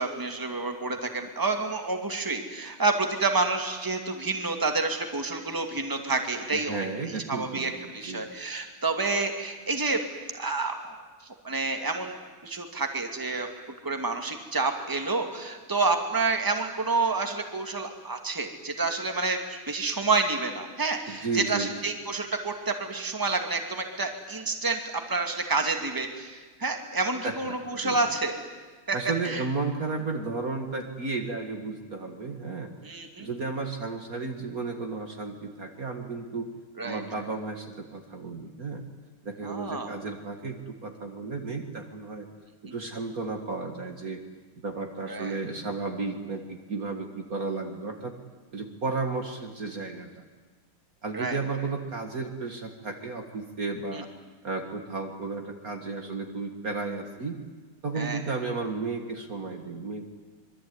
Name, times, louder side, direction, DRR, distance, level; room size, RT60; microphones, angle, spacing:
voice 1, 0.0-6.8 7.1-10.0 10.4-11.0 11.4-12.2 12.4-13.5 13.8-24.8 25.1-28.4 28.9-29.0 29.2-29.4 32.8-33.3 36.8-37.0 39.4-40.0 45.1-45.4 51.1-51.4 53.9-54.0 57.9-58.2, right 3 dB, 10° right, 4 dB, 2.3 m, -29 dB
voice 2, 6.5-8.3 21.1-21.7 27.2-28.0 28.9-32.7 33.2-36.5 36.8-38.8 39.2-42.3 42.6-44.2 44.6-48.1 48.5-50.2 51.0-54.1 54.4-57.4 57.8-60.1, right 3 dB, 45° right, 4 dB, 2.2 m, -33 dB
25.5 x 22.5 x 9.6 m, 1.4 s
omnidirectional pair, 2.3 m